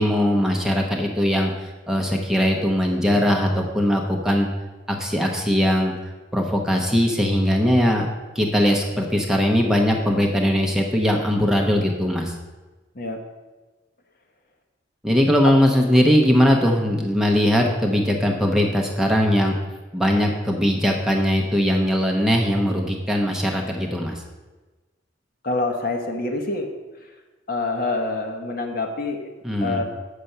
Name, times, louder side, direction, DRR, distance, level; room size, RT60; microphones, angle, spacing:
voice 1, 0.0-4.5 4.9-5.9 6.3-8.1 8.3-12.3 15.0-19.5 19.9-24.2 29.4-29.8, equal, 5° right, 0 dB, 0.8 m, -20 dB
voice 2, 25.4-26.7 27.5-29.3 29.6-29.8, left 2 dB, 50° left, 3 dB, 1.1 m, -26 dB
7.6 x 6.6 x 5.6 m, 1.2 s
head